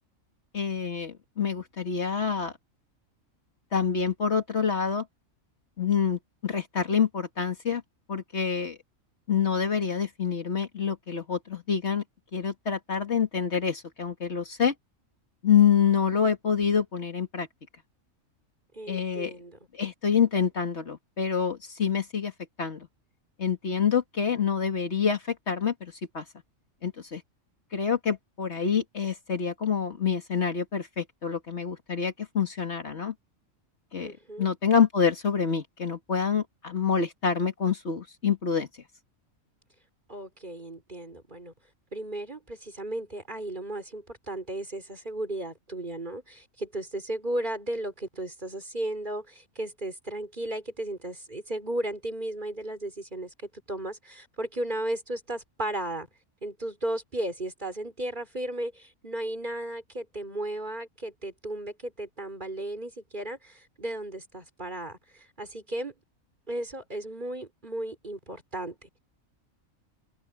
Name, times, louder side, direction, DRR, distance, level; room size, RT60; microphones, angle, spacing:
voice 1, 0.5-2.5 3.7-5.1 5.8-7.8 8.1-8.8 9.3-12.0 12.3-14.7 15.4-17.5 18.9-19.3 19.7-22.3 22.6-22.9 23.4-26.2 26.8-27.2 27.7-33.1 33.9-38.7, left 7 dB, 55° left, 2.1 m, -27 dB
voice 2, 18.7-19.6 34.0-34.5 40.1-41.5 41.9-53.3 53.7-56.1 56.4-65.9 66.5-69.0, right 1 dB, 35° right, 4.3 m, -35 dB
omnidirectional pair, 1.4 m